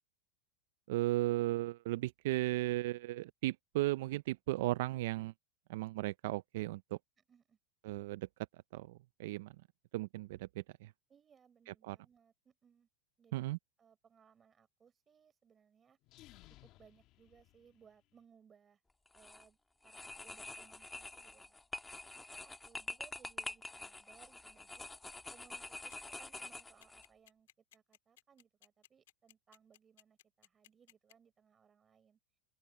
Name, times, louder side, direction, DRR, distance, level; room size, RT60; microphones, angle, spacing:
voice 1, 0.9-5.3 5.7-7.0 7.8-8.3 8.7-9.5 9.9-10.9 11.8-12.0 13.3-13.6, right 17 dB, 65° right, 0.4 m, -35 dB
voice 2, 7.2-7.6 11.1-12.9 13.2-13.5 13.8-16.0 16.6-18.8 19.1-19.6 19.8-21.6 22.1-24.9 25.3-27.5 27.7-32.2, right 7 dB, 20° right, 4.9 m, -65 dB
sound 1, 16.0-18.2, left 16 dB, 40° left, 1.4 m, -61 dB
sound 2, 19.1-19.5 19.8-27.1, left 2 dB, 5° left, 1.6 m, -47 dB
sound 3, 25.9-31.1, left 14 dB, 80° left, 2.5 m, -62 dB
open air
supercardioid pair, 150°, 0 cm